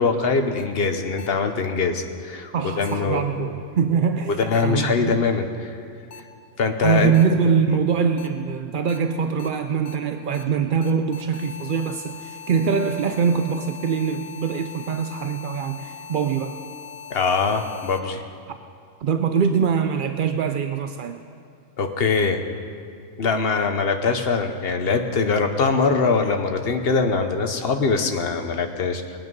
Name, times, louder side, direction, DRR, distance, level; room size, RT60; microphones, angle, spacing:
voice 1, 0.0-3.5 4.3-5.7 6.6-7.1 17.1-18.2 21.8-22.4 23.2-29.0, left 4 dB, 50° left, 6 dB, 1.1 m, -22 dB
sound 1, 1.2-1.3 2.9-3.0 4.5-4.6 6.1-6.2 7.1-7.2 8.2-8.3 8.9-9.0 9.4-9.5 9.9-10.0 10.3-10.4 10.8-18.0, left 7 dB, 85° left, 1.3 m, -40 dB
voice 2, 2.5-5.1 6.8-16.6 18.5-18.6 19.0-21.2, right 6 dB, 65° right, 7 dB, 0.5 m, -23 dB
20.5 x 9.2 x 5.4 m, 2.3 s
omnidirectional pair, 1.4 m